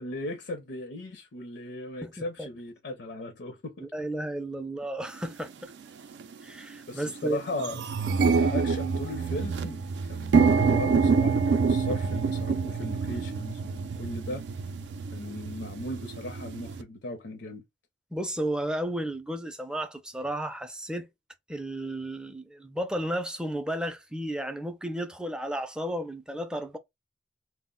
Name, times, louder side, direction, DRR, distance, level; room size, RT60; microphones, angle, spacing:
voice 1, 0.0-3.9 6.9-7.8 8.4-14.4 15.1-17.6, left 2 dB, 80° left, 0.6 m, -37 dB
voice 2, 2.0-2.5 3.8-5.7 6.4-7.4 18.1-21.1 21.5-26.8, right 1 dB, 5° right, 0.4 m, -33 dB
sound 1, 5.2-5.3 6.1-6.3 6.7-6.8 7.1-16.8, right 5 dB, 80° right, 0.4 m, -26 dB
2.3 x 2.0 x 3.6 m
head